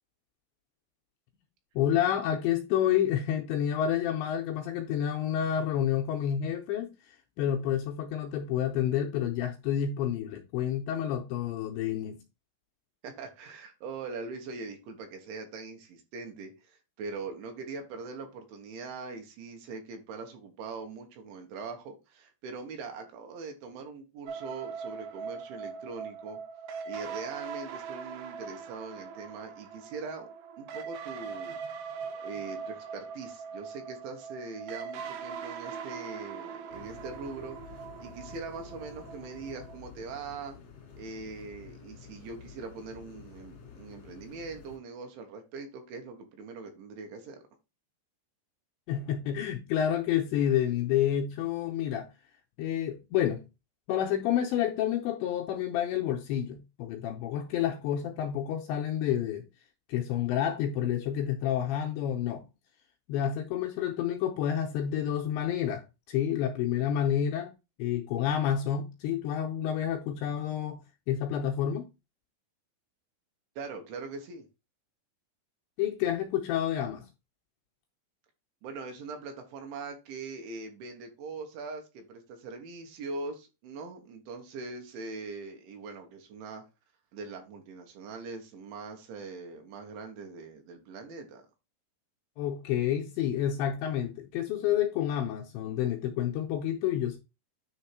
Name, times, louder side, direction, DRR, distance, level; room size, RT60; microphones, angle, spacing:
voice 1, 1.8-12.2 48.9-52.1 52.6-53.4 53.9-59.5 59.9-62.4 63.1-67.5 67.8-71.9 75.8-77.1 92.4-97.2, left 10 dB, 85° left, 2.6 m, -29 dB
voice 2, 13.0-26.4 26.9-30.3 30.6-31.6 32.2-40.6 41.0-47.4 73.6-74.5 78.6-86.6 87.1-91.4, right 4 dB, 70° right, 3.5 m, -42 dB
Interstate Synth Stabs, 24.3-39.8, right 6 dB, 90° right, 2.1 m, -41 dB
sound 1, 36.7-44.8, left 7 dB, 60° left, 1.6 m, -50 dB
9.8 x 3.7 x 4.6 m
omnidirectional pair, 5.9 m